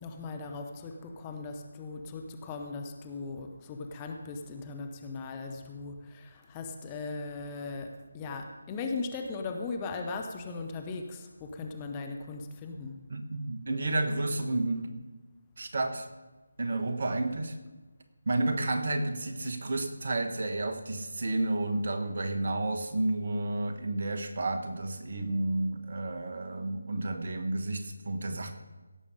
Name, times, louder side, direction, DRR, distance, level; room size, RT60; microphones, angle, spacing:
voice 1, 0.0-13.0, left 4 dB, 15° left, 4 dB, 0.9 m, -38 dB
voice 2, 13.1-14.9 15.6-16.1 16.6-17.6 18.3-28.5, right 2 dB, 50° right, 6 dB, 1.3 m, -31 dB
17.0 x 7.0 x 5.2 m, 1.2 s
figure-of-eight pair, 160°, 0 cm